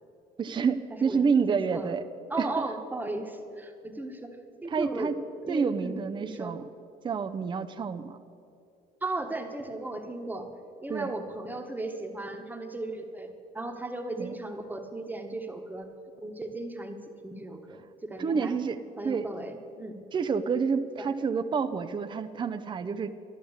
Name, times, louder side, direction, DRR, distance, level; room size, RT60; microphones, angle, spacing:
voice 1, 0.4-2.0 2.4-2.5 4.7-5.2 5.5-6.6 7.0-8.2 10.9-11.1 14.2-14.4 18.2-18.8 19.0-19.3 20.1-23.1, right 5 dB, 30° right, 7 dB, 0.6 m, -28 dB
voice 2, 1.5-1.9 2.3-5.1 5.4-6.5 9.0-10.5 10.8-15.9 16.2-18.5 19.0-20.0 21.0-21.1, right 2 dB, 10° right, 4 dB, 1.3 m, -36 dB
12.5 x 11.5 x 7.2 m, 2.6 s
cardioid pair, 110°, 17 cm